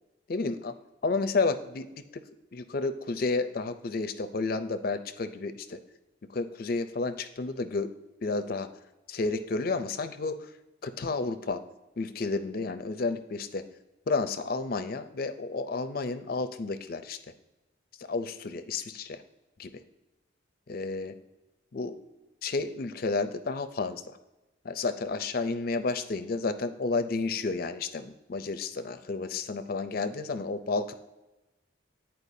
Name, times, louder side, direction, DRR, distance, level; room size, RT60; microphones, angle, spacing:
voice 1, 0.3-0.7 1.0-2.2 2.5-5.8 6.3-7.9 8.2-8.7 9.1-10.5 10.8-11.6 12.0-13.6 14.1-17.2 18.1-19.2 19.6-19.7 20.7-21.1 21.7-22.0 22.4-24.0 24.6-30.9, left 3 dB, 50° left, 10 dB, 0.4 m, -31 dB
9.9 x 4.4 x 2.7 m, 1.0 s
head